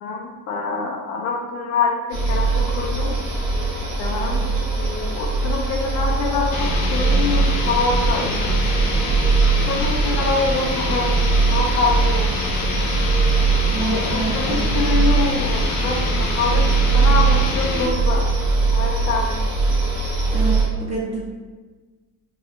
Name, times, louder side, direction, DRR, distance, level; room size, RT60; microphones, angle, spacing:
voice 1, 0.0-3.1 4.0-4.5 4.8-8.6 9.7-11.2 11.5-12.3 13.8-16.7 16.9-18.3 18.7-19.4, left 4 dB, 50° left, 0 dB, 0.5 m, -25 dB
sound 1, 2.1-20.6, right 3 dB, 75° right, 1.1 m, -21 dB
sound 2, 6.5-18.0, left 2 dB, 80° left, 0.8 m, -27 dB
voice 2, 13.7-14.8 20.3-21.2, right 3 dB, 20° right, -4 dB, 0.5 m, -27 dB
3.0 x 2.4 x 3.0 m, 1.3 s
cardioid pair, 170°, 33 cm